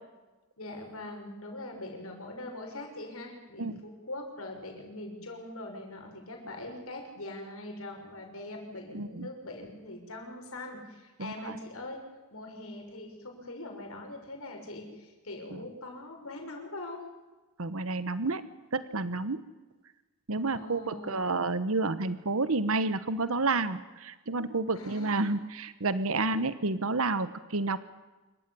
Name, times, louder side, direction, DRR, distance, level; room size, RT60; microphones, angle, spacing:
voice 1, 0.6-12.0 12.3-17.0 20.4-21.3 24.7-25.3, left 2 dB, 70° left, 2 dB, 6.4 m, -42 dB
voice 2, 8.9-9.3 11.2-11.6 17.6-18.4 18.7-19.4 20.3-27.8, right 3 dB, 70° right, 14 dB, 1.1 m, -30 dB
27.0 x 15.0 x 10.0 m, 1.2 s
head